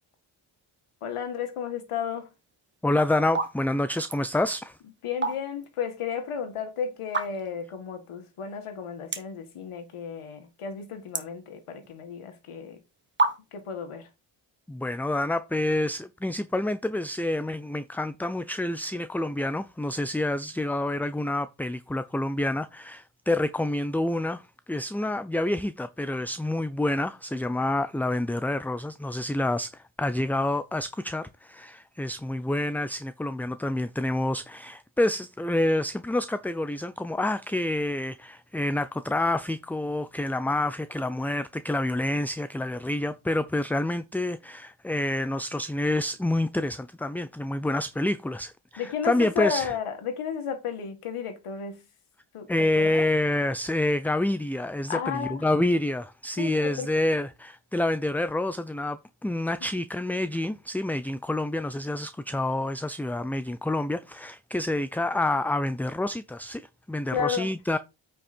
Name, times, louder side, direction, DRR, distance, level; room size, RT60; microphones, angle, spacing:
voice 1, 1.0-2.3 5.0-12.8 13.5-14.1 48.8-51.9 52.3-52.5 52.7-53.1 54.9-55.4 56.4-56.9 67.1-67.5, left 7 dB, 85° left, 2.0 m, -33 dB
sound 1, 2.5-2.8 3.2-3.5 3.9-4.2 5.0-5.7 6.1-6.2 7.0-7.6 8.1-8.2 8.4-8.5 9.1-9.4 9.8-10.3 10.6-12.0 12.7-12.8 13.2-13.7, right 3 dB, 20° right, 1.4 m, -29 dB
voice 2, 2.8-4.8 14.7-49.7 52.5-67.8, left 1 dB, 5° left, 0.4 m, -28 dB
8.7 x 5.5 x 4.4 m
cardioid pair, 85°, 50 cm